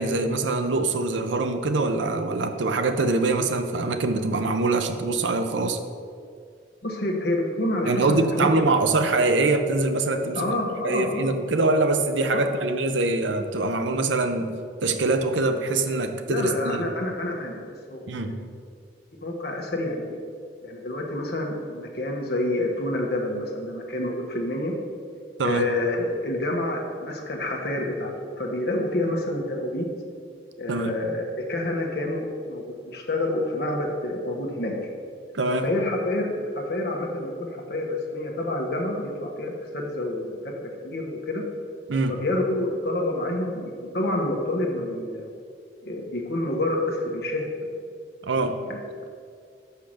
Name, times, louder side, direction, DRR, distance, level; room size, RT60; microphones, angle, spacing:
voice 1, 0.0-5.8 7.8-10.5 10.8-14.6 14.8-16.9 18.1-18.4 25.4-25.6 30.7-31.0 35.3-35.7 41.9-42.1 48.2-48.6, right 2 dB, 85° right, 7 dB, 0.6 m, -24 dB
voice 2, 6.8-8.5 10.3-11.5 12.3-12.4 16.3-17.6 17.9-18.5 19.2-20.2 20.6-24.7 25.4-29.9 30.6-34.7 35.6-41.4 42.1-45.3 45.8-47.5 48.6-48.8, left 1 dB, 55° left, 0 dB, 1.2 m, -28 dB
5.8 x 5.6 x 6.4 m, 2.2 s
head